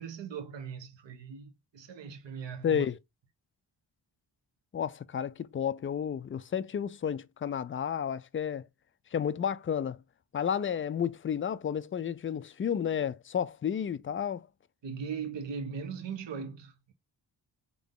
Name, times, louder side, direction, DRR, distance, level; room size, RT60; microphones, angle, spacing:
voice 1, 0.0-2.9 14.8-16.9, right 6 dB, 60° right, 1.0 m, -39 dB
voice 2, 2.6-3.0 4.7-8.6 9.1-10.0 10.3-14.5, left 8 dB, 30° left, 0.4 m, -31 dB
3.9 x 3.6 x 3.7 m
cardioid pair, 45°, 49 cm